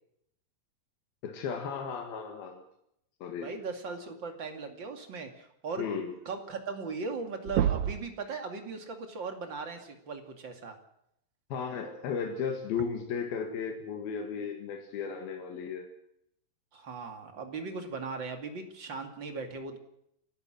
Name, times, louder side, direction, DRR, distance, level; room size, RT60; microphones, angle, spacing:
voice 1, 1.2-2.6 3.2-3.5 5.8-6.2 11.5-15.9, left 6 dB, 85° left, 3 dB, 3.7 m, -35 dB
voice 2, 3.4-5.9 6.3-10.7 16.7-19.8, right 4 dB, 35° right, 5 dB, 2.7 m, -38 dB
sound 1, 6.5-6.6 6.9-7.2 7.4-8.1 9.8-9.9 11.8-11.9 12.8-12.9, right 10 dB, 65° right, 1.9 m, -29 dB
29.0 x 12.0 x 7.8 m, 0.76 s
omnidirectional pair, 4.2 m